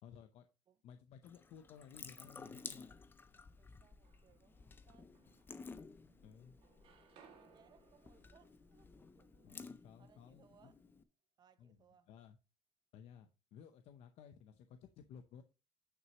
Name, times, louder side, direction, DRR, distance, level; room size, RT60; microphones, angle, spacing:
voice 1, 0.0-0.5 0.8-3.0 6.2-6.6 9.4-10.7 11.6-11.8 12.1-12.4 12.9-15.4, left 7 dB, 65° left, 0.7 m, -57 dB
Water tap faucet / Sink (filling or washing) / Drip, 1.2-11.0, left 4 dB, 20° left, 0.5 m, -54 dB
voice 2, 3.6-5.7 6.0-6.8 7.4-9.7 10.0-10.8 11.4-12.1, right 8 dB, 40° right, 0.6 m, -70 dB
sound 1, 3.7-4.6 5.1-6.2 6.4-10.4, right 7 dB, 60° right, 2.1 m, -68 dB
9.4 x 6.1 x 2.9 m
cardioid pair, 160°, 11 cm